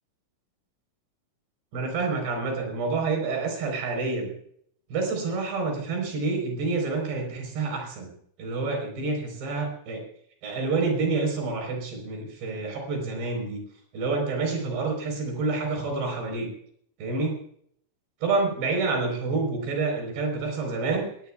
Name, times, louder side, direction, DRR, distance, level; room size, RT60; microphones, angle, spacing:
voice 1, 1.7-4.3 4.9-8.1 8.4-10.0 10.4-13.6 13.9-16.5 17.0-17.4 18.2-21.1, right 3 dB, 55° right, 3 dB, 6.1 m, -28 dB
23.0 x 18.5 x 2.4 m, 0.66 s
omnidirectional pair, 5.8 m